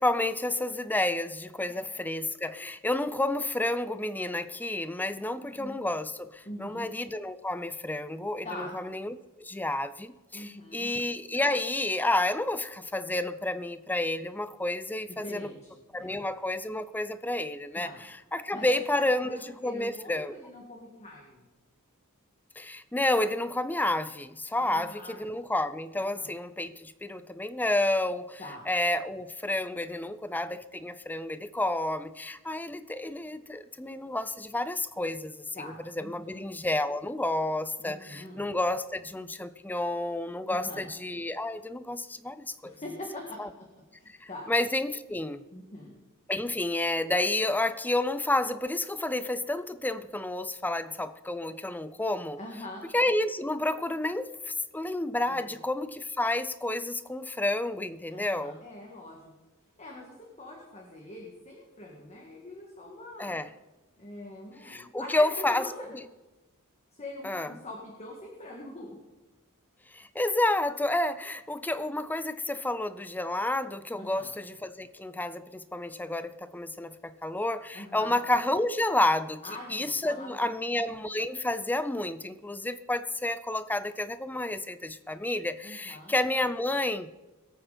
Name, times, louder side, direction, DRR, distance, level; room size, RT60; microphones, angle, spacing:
voice 1, 0.0-15.5 15.9-20.3 22.6-35.7 36.0-42.8 43.4-43.5 44.1-45.4 46.3-52.4 52.9-58.6 63.2-63.5 64.6-65.7 67.2-67.5 69.9-79.4 79.7-87.1, left 1 dB, 10° left, 0.5 m, -30 dB
voice 2, 5.4-5.8 6.4-6.9 8.4-8.8 10.3-10.9 15.2-15.7 16.0-16.2 17.7-18.0 18.5-21.5 24.6-25.4 26.0-26.3 28.4-28.7 35.5-36.4 37.8-38.4 40.5-40.9 42.6-43.4 44.0-44.5 45.5-45.9 52.4-52.9 55.3-55.6 58.1-59.2 59.8-63.4 64.0-65.9 66.9-69.0 73.9-74.3 77.7-78.2 79.4-80.8 85.6-86.1, left 1 dB, 30° left, 2.1 m, -43 dB
21.0 x 8.9 x 4.2 m
head